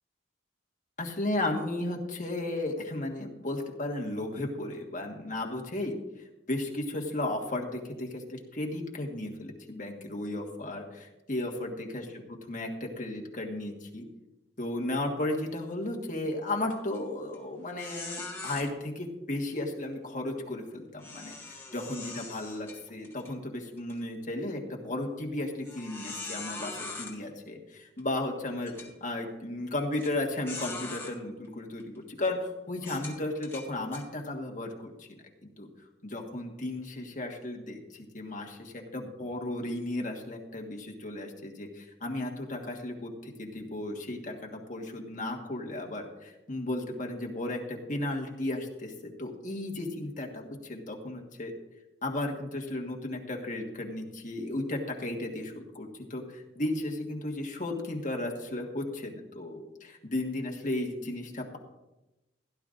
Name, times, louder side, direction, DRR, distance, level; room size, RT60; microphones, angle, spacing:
voice 1, 1.0-12.1 12.5-14.0 14.6-35.1 35.4-35.7 36.0-51.5 52.0-61.6, left 1 dB, 40° left, 1 dB, 1.5 m, -35 dB
sound 1, 16.7-17.0 17.3-17.4 17.8-18.6 21.0-23.3 23.8-23.9 24.6-24.7 25.6-27.1 28.0-28.1 28.6-28.9 30.0-30.1 30.5-31.1 31.8-32.0 32.8-34.0, left 3 dB, 15° left, 1.6 m, -41 dB
16.5 x 11.0 x 2.6 m, 1.0 s
head